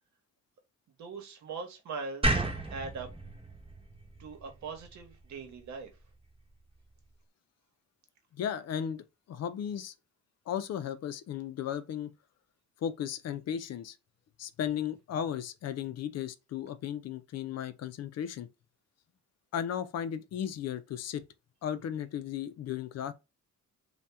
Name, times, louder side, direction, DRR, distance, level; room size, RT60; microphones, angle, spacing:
voice 1, 1.0-2.4 2.7-3.1 4.2-5.9, right 4 dB, 65° right, 1.1 m, -41 dB
sound 1, 2.2-5.4, right 2 dB, 20° right, 1.0 m, -33 dB
voice 2, 8.3-9.9 10.5-12.1 12.8-14.0 14.4-18.5 19.5-21.2 21.6-23.1, left 9 dB, 55° left, 0.5 m, -35 dB
2.7 x 2.3 x 3.4 m
cardioid pair, 90°, 30 cm